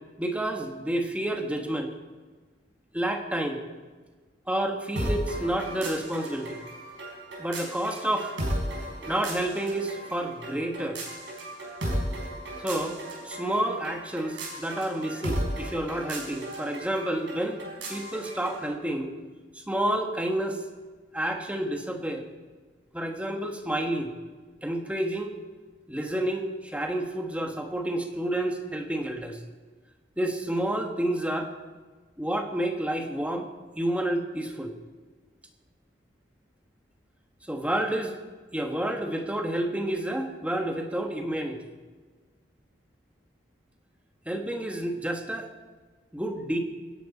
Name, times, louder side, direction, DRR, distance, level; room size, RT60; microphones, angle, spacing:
voice 1, 0.2-1.9 2.9-3.6 4.5-6.6 7.4-8.3 9.1-11.0 12.6-13.0 13.2-17.6 17.9-19.1 19.5-20.6 21.1-22.2 22.9-24.1 24.6-25.4 25.9-29.4 30.2-31.5 32.2-33.5 33.8-34.7 37.5-38.2 38.5-41.6 44.2-45.5 46.1-46.6, right 1 dB, 5° right, 3 dB, 1.5 m, -29 dB
sound 1, 5.0-18.7, right 1 dB, 85° right, 4.7 m, -35 dB
25.0 x 10.5 x 4.2 m, 1.4 s
head